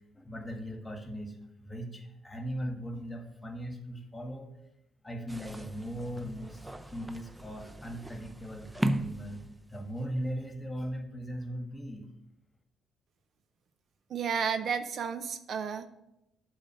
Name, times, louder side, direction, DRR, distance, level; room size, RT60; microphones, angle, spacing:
voice 1, 0.1-4.5 5.0-9.4 9.7-12.1, equal, 15° left, 4 dB, 1.5 m, -39 dB
sound 1, 5.3-10.0, right 1 dB, 10° right, 0.5 m, -37 dB
voice 2, 14.1-15.9, right 6 dB, 60° right, 10 dB, 0.5 m, -32 dB
8.2 x 4.0 x 6.3 m, 0.86 s
cardioid pair, 90°, 0 cm